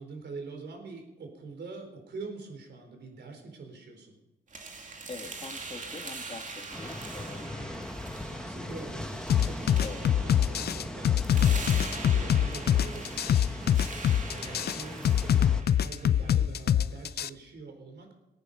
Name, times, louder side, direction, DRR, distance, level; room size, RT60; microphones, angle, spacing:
voice 1, 0.0-4.1 8.3-13.8 14.3-18.1, right 4 dB, 75° right, 4 dB, 4.4 m, -44 dB
sound 1, 4.5-16.5, right 3 dB, 45° right, 2.5 m, -43 dB
voice 2, 5.1-7.8 8.6-9.0 9.8-10.0, left 3 dB, 35° left, 3 dB, 2.6 m, -44 dB
sound 2, 6.7-15.6, left 1 dB, 5° left, 1.4 m, -40 dB
sound 3, 9.3-17.3, left 10 dB, 65° left, 0.5 m, -24 dB
21.5 x 9.7 x 5.5 m, 0.95 s
cardioid pair, 85°, 18 cm